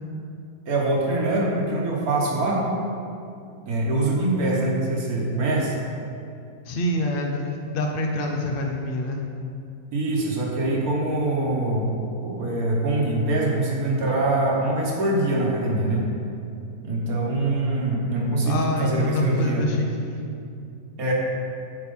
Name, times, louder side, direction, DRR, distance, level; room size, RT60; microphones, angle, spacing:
voice 1, 0.7-2.7 3.7-5.7 9.9-11.9 12.2-16.0 16.8-19.7 21.0-21.1, right 2 dB, 60° right, -2 dB, 1.7 m, -23 dB
voice 2, 6.7-9.2 18.4-20.2, left 2 dB, 70° left, 2 dB, 0.5 m, -26 dB
8.9 x 4.5 x 5.4 m, 2.5 s
omnidirectional pair, 1.8 m